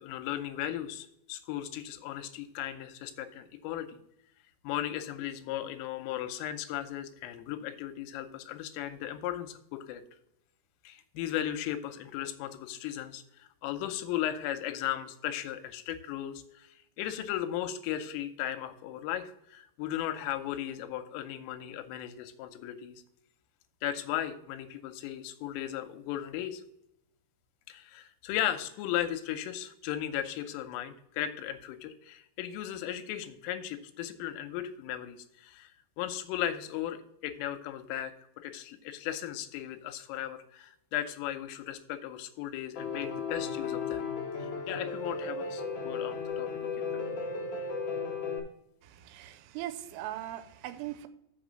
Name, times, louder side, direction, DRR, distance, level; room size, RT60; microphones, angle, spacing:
voice 1, 0.0-4.0 4.6-10.0 10.8-16.7 17.0-23.0 23.8-26.6 27.7-35.7 36.0-38.1 38.4-44.1 44.7-47.2, left 11 dB, 85° left, 9 dB, 3.3 m, -36 dB
Piano, 42.8-48.4, left 5 dB, 65° left, 2.0 m, -35 dB
voice 2, 48.8-51.1, right 13 dB, 85° right, 11 dB, 3.2 m, -40 dB
6.7 x 5.9 x 6.2 m, 0.79 s
omnidirectional pair, 5.8 m